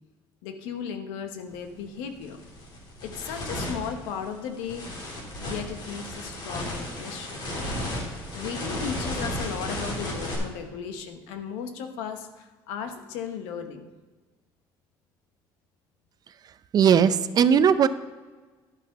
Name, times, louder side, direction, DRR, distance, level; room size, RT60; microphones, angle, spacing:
voice 1, 0.4-2.4 3.0-4.9 5.4-7.4 8.3-13.9, left 7 dB, 90° left, 7 dB, 1.0 m, -36 dB
sound 1, 1.5-1.7 2.1-10.4, left 1 dB, 60° left, 3.3 m, -34 dB
voice 2, 16.7-17.9, right 7 dB, 45° right, 13 dB, 0.5 m, -18 dB
11.0 x 5.7 x 5.7 m, 1.3 s
supercardioid pair, 90°, 9 cm